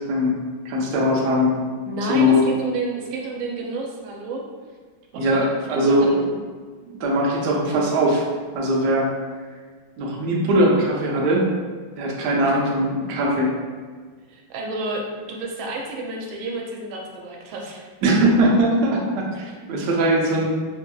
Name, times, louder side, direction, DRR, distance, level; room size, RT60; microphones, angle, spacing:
voice 1, 0.1-1.5 2.1-2.4 5.1-6.1 7.0-8.2 8.5-9.1 10.0-11.5 12.0-13.5 18.0-20.5, equal, 70° right, -2 dB, 1.1 m, -20 dB
voice 2, 1.9-4.4 5.1-6.3 14.3-15.0 15.3-17.8 19.5-19.6, right 3 dB, 90° right, 0 dB, 1.4 m, -31 dB
3.5 x 2.6 x 2.2 m, 1.5 s
omnidirectional pair, 2.1 m